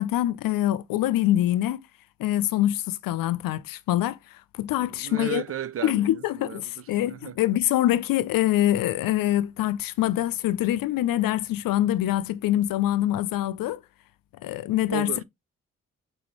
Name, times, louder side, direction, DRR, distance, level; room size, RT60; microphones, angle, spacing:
voice 1, 0.0-1.8 2.2-4.2 4.5-5.4 5.8-13.8 14.4-15.1, left 13 dB, 75° left, 0.5 m, -24 dB
voice 2, 4.8-7.4 14.9-15.2, right 9 dB, 40° right, 0.5 m, -35 dB
6.0 x 2.7 x 3.1 m
supercardioid pair, 50°, 34 cm